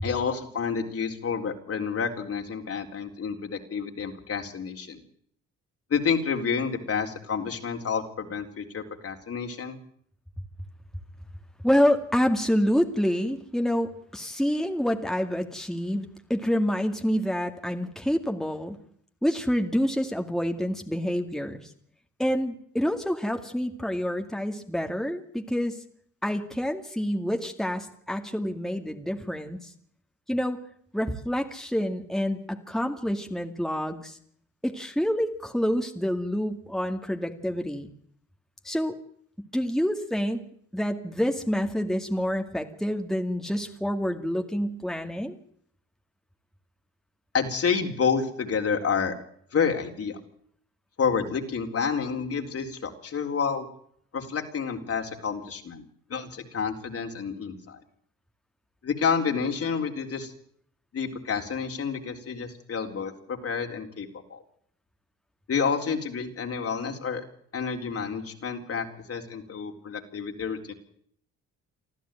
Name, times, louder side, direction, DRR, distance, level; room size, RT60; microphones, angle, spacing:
voice 1, 0.0-5.0 5.9-9.8 47.3-49.1 49.5-50.2 51.0-53.7 54.1-55.8 56.1-57.8 58.8-60.3 60.9-64.4 65.5-67.3 67.5-70.7, left 6 dB, 50° left, 4 dB, 4.0 m, -29 dB
voice 2, 11.6-18.8 19.2-21.7 22.2-25.8 26.2-29.7 30.3-30.6 30.9-34.2 34.6-37.9 38.6-39.0 39.4-40.4 40.7-45.4, equal, ahead, 4 dB, 2.3 m, -27 dB
25.0 x 14.0 x 9.1 m, 0.66 s
cardioid pair, 90°, 30 cm